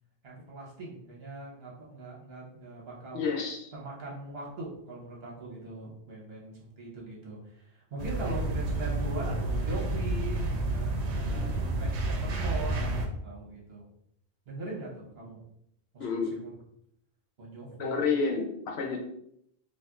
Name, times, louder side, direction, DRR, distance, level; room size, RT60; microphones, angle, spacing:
voice 1, 0.2-3.3 3.7-13.9 14.5-15.4 15.9-16.6 17.4-18.1 18.8-18.9, right 2 dB, 65° right, -3 dB, 1.2 m, -41 dB
voice 2, 3.1-3.7 16.0-16.3 17.8-19.0, left 5 dB, 75° left, 2 dB, 0.9 m, -29 dB
sound 1, 8.0-13.1, right 2 dB, 90° right, 0.9 m, -30 dB
4.2 x 2.4 x 2.3 m, 0.73 s
omnidirectional pair, 1.1 m